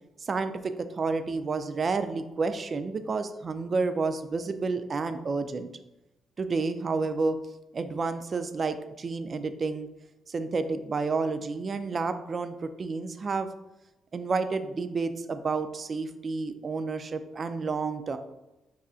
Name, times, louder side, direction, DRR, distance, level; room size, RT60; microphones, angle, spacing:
voice 1, 0.2-5.7 6.4-7.4 7.7-9.9 10.3-13.5 14.1-18.2, right 4 dB, 40° right, 10 dB, 0.3 m, -30 dB
5.4 x 2.4 x 2.4 m, 0.97 s
cardioid pair, 90°, 0 cm